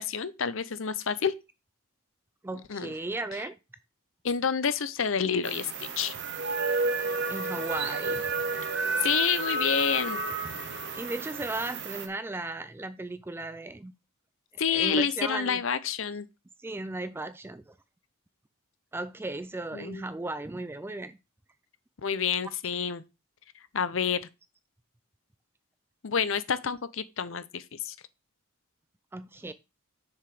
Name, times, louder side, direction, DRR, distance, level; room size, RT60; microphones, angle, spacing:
voice 1, 0.0-1.3 2.7-2.9 4.2-6.1 9.0-10.2 14.6-16.3 19.7-20.0 22.0-23.0 23.7-24.2 26.0-28.0, left 7 dB, 65° left, 0.6 m, -28 dB
voice 2, 2.4-3.6 7.3-8.2 10.9-13.9 14.7-15.6 16.6-17.8 18.9-21.2 29.1-29.5, right 2 dB, 10° right, 0.3 m, -36 dB
sound 1, 5.4-12.1, right 3 dB, 55° right, 1.1 m, -31 dB
6.6 x 4.8 x 4.9 m
head